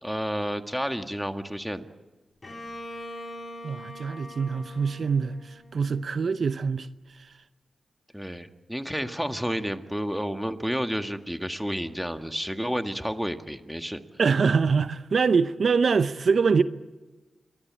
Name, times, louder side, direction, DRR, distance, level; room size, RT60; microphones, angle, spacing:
voice 1, 0.0-1.9 8.1-14.0, equal, ahead, 1.8 m, -30 dB
Bowed string instrument, 2.4-6.2, left 1 dB, 35° left, 4.0 m, -42 dB
voice 2, 3.6-6.9 14.2-16.6, right 5 dB, 65° right, 0.7 m, -24 dB
29.5 x 13.0 x 8.8 m
cardioid pair, 45°, 0 cm